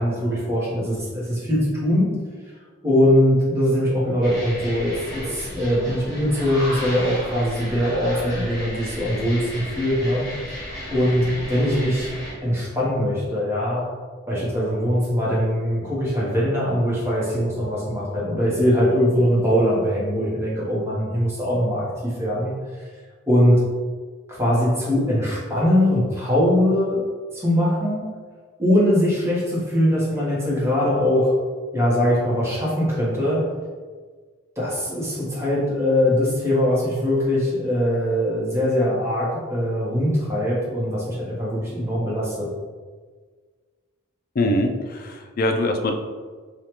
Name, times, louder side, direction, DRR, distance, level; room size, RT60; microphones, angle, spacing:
voice 1, 0.0-2.2 2.8-10.3 10.6-12.1 12.4-13.9 14.3-22.8 23.3-23.6 24.3-27.0 27.3-28.1 28.6-31.3 31.7-33.5 34.6-42.5, equal, 15° right, -7 dB, 1.0 m, -21 dB
sound 1, 4.2-12.4, equal, 20° left, 1.2 m, -34 dB
voice 2, 44.3-45.9, left 1 dB, 45° left, 4 dB, 0.4 m, -23 dB
4.9 x 2.4 x 2.9 m, 1.5 s
head